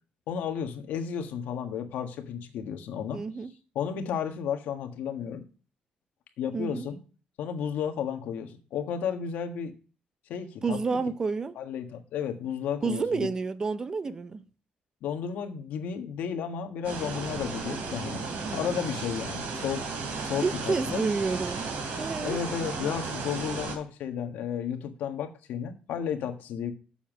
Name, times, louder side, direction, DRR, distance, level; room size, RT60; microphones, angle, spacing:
voice 1, 0.3-3.2 3.7-5.4 6.4-7.0 7.4-9.7 10.3-11.0 11.5-13.3 15.0-18.2 18.5-19.8 20.2-21.0 22.2-26.7, left 8 dB, 90° left, 1.5 m, -33 dB
voice 2, 3.1-3.5 6.5-6.9 10.6-11.6 12.8-14.4 18.3-18.7 20.4-22.4, right 4 dB, 25° right, 0.5 m, -30 dB
sound 1, 16.8-23.8, right 4 dB, 80° right, 3.1 m, -34 dB
7.2 x 7.2 x 6.1 m
cardioid pair, 175°, 3 cm